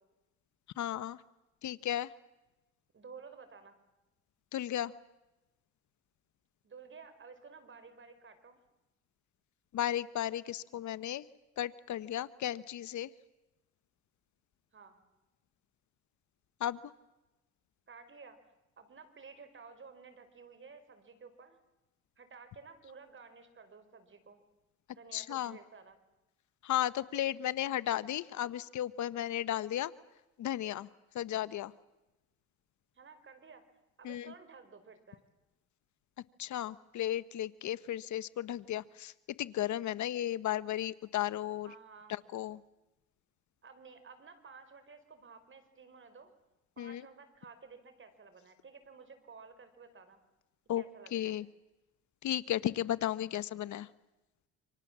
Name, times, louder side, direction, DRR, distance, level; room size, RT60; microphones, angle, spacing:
voice 1, 0.8-1.2 1.6-2.1 4.5-4.9 9.7-11.3 11.6-13.1 16.6-16.8 25.1-25.6 26.6-29.9 30.4-30.9 31.1-31.7 34.0-34.3 36.4-39.1 39.4-41.7 42.1-42.6 46.8-47.0 50.7-50.8 51.1-51.5 52.2-53.9, left 12 dB, 70° left, 17 dB, 1.0 m, -34 dB
voice 2, 2.9-3.8 6.6-8.6 14.7-15.0 17.9-18.4 18.8-21.6 22.2-24.4 24.9-26.0 32.9-33.7 34.0-35.2 41.6-42.2 43.6-46.3 46.8-50.2 50.7-51.3, right 5 dB, 40° right, 9 dB, 4.8 m, -53 dB
28.5 x 25.5 x 7.4 m, 1.0 s
cardioid pair, 90°, 30 cm